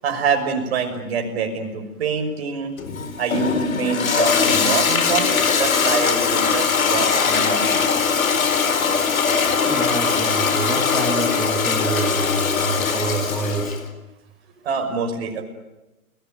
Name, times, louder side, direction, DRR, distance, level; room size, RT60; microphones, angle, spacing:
voice 1, 0.0-2.7 3.2-7.9 14.6-15.4, right 5 dB, 45° right, 4 dB, 6.2 m, -26 dB
Toilet flush, 2.8-13.8, left 5 dB, 65° left, 4.4 m, -20 dB
voice 2, 9.6-13.8, right 2 dB, ahead, 3 dB, 2.1 m, -27 dB
29.5 x 20.0 x 9.4 m, 1.0 s
hypercardioid pair, 150°, 43 cm